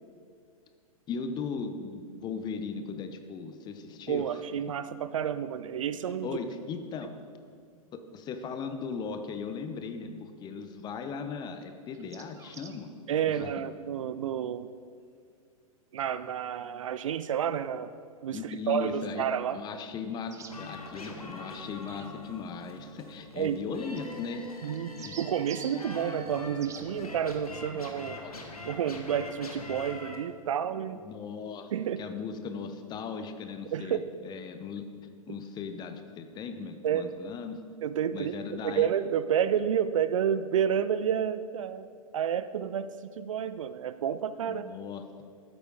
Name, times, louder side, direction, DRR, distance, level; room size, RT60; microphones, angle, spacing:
voice 1, 1.1-4.4 6.2-7.1 7.9-12.9 13.3-13.5 18.3-24.5 25.0-25.2 28.0-28.3 31.0-31.7 32.0-34.8 35.3-37.6 38.1-38.9 44.5-45.0, left 5 dB, 25° left, 8 dB, 0.8 m, -38 dB
voice 2, 4.1-6.3 13.1-14.7 15.9-17.9 18.2-19.6 23.4-23.6 24.6-28.2 28.7-31.0 31.7-32.0 33.7-34.0 36.8-37.1 37.8-38.3 38.6-44.7, right 9 dB, 60° right, 13 dB, 0.5 m, -30 dB
sound 1, 11.9-12.8 16.0-16.1 20.3-20.6 21.8-22.1 24.0-24.1 24.7-25.8 26.6-26.9, right 6 dB, 15° right, 0.7 m, -46 dB
sound 2, 20.5-30.2, left 2 dB, 85° left, 1.4 m, -43 dB
13.5 x 8.0 x 3.7 m, 2.2 s
figure-of-eight pair, 105°, 19 cm